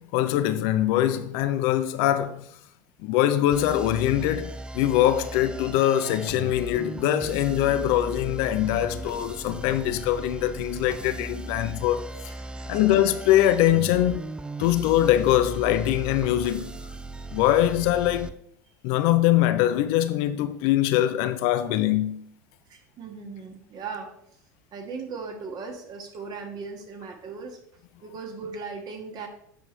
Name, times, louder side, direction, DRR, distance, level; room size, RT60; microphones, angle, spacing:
voice 1, 0.0-2.5 3.0-12.1 12.7-14.2 14.6-16.8 17.3-18.4 18.8-22.3, left 13 dB, 60° left, 0.6 m, -23 dB
sound 1, 3.5-18.3, right 1 dB, 10° right, 0.4 m, -37 dB
voice 2, 12.3-12.8 22.7-24.1 24.7-27.6 28.0-29.3, right 4 dB, 45° right, 1.6 m, -38 dB
8.3 x 5.8 x 3.3 m
figure-of-eight pair, 75°, 10 cm